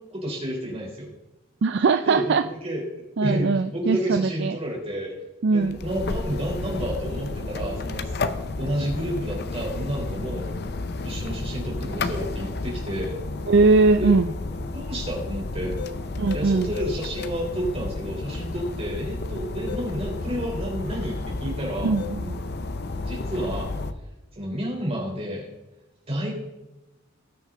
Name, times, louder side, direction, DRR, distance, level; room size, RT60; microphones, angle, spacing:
voice 1, 0.1-1.1 2.0-2.9 3.2-5.2 5.5-8.2 8.6-10.5 11.0-13.2 14.0-14.2 14.7-15.8 16.3-22.0 23.0-23.7 24.3-25.5 26.1-26.3, equal, 30° right, -2 dB, 3.7 m, -30 dB
voice 2, 1.6-2.4 3.2-4.6 5.4-5.8 13.5-14.3 16.2-16.7 21.8-22.4, right 4 dB, 55° right, 9 dB, 0.4 m, -20 dB
sound 1, 5.6-23.9, left 3 dB, 55° left, 0.7 m, -31 dB
18.5 x 6.5 x 3.8 m, 0.97 s
head